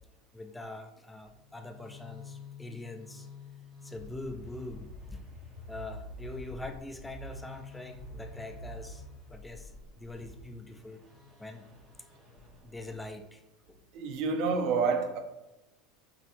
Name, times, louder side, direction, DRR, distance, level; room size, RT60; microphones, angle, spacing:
voice 1, 0.3-3.3 3.8-5.2 5.7-9.0 9.3-11.0 11.4-11.7 12.6-13.4 13.7-13.8, left 2 dB, 10° left, 0.3 m, -43 dB
sound 1, 1.4-13.2, left 1 dB, 30° right, 1.1 m, -48 dB
voice 2, 13.9-15.2, right 5 dB, 60° right, 0.6 m, -28 dB
5.5 x 2.7 x 2.5 m
supercardioid pair, 120°, 0 cm